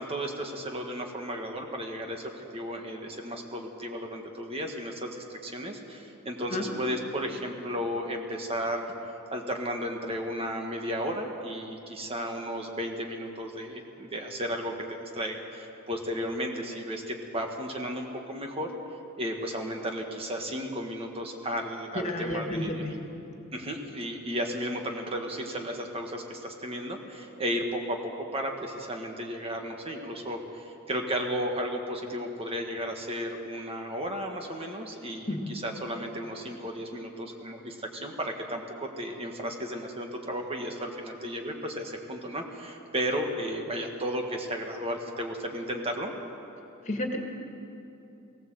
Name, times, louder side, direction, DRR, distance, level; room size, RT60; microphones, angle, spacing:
voice 1, 0.0-8.9 9.3-18.7 19.2-22.9 23.5-46.1, equal, 25° right, 2 dB, 1.6 m, -34 dB
voice 2, 21.9-22.9 35.3-35.4 46.9-47.2, left 1 dB, 35° left, 2 dB, 2.2 m, -31 dB
19.5 x 18.0 x 7.8 m, 2.9 s
head